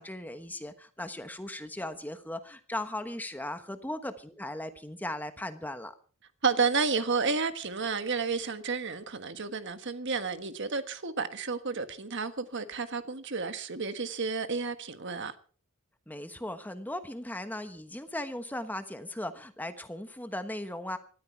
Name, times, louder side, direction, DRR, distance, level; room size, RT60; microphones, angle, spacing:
voice 1, 0.0-5.9 16.1-21.0, left 1 dB, 10° left, 1.2 m, -37 dB
voice 2, 6.4-15.3, right 4 dB, 60° right, 1.4 m, -31 dB
19.0 x 13.5 x 4.5 m
head